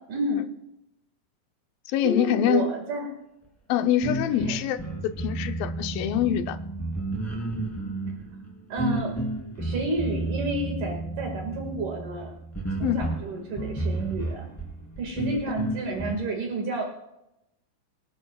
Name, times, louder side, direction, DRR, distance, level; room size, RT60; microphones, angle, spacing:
voice 1, 0.1-0.4 2.0-3.1 4.3-4.6 8.7-12.3 12.8-14.5 15.0-16.8, right 2 dB, 65° right, 3.5 m, -30 dB
voice 2, 1.9-2.7 3.7-6.6 12.8-13.0, left 10 dB, 90° left, 2.5 m, -25 dB
sound 1, 4.0-16.2, right 2 dB, 5° left, 2.1 m, -32 dB
25.0 x 11.0 x 2.4 m
omnidirectional pair, 4.0 m